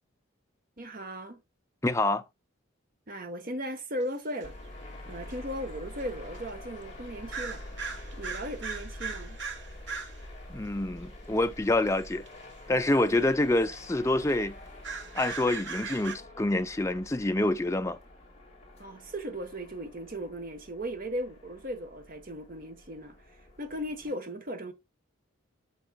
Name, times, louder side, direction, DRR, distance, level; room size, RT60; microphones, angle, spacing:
voice 1, 0.8-1.4 3.1-4.5 5.1-7.6 8.1-9.4 12.8-12.9 18.8-23.2 23.6-24.7, equal, 45° right, 1.2 m, -37 dB
voice 2, 1.8-2.2 10.5-12.2 12.7-14.6 15.2-18.0, left 2 dB, 15° left, 0.5 m, -27 dB
sound 1, 4.4-24.1, left 1 dB, 30° left, 2.1 m, -47 dB
sound 2, 4.4-4.5 5.3-5.4 6.2-6.4 7.3-10.2 11.8-12.3 12.8-13.0 13.4-13.8 14.3-14.4 14.7-16.1, right 5 dB, 60° right, 1.4 m, -39 dB
8.5 x 6.0 x 2.3 m
head